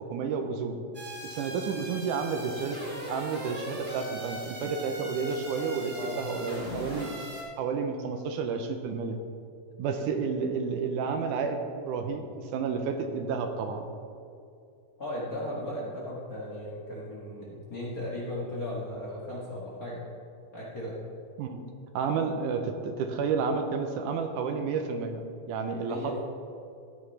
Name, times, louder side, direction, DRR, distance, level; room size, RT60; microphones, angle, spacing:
voice 1, 0.1-0.8 1.2-7.1 7.6-9.2 9.8-13.9 21.4-21.6 21.9-26.2, right 5 dB, 80° right, 5 dB, 2.1 m, -31 dB
sound 1, 0.9-7.4, right 1 dB, 20° right, 2.1 m, -39 dB
voice 2, 15.0-20.0 20.5-21.0 25.9-26.2, left 1 dB, 35° left, -6 dB, 1.7 m, -36 dB
14.0 x 9.4 x 3.3 m, 2.5 s
omnidirectional pair, 3.7 m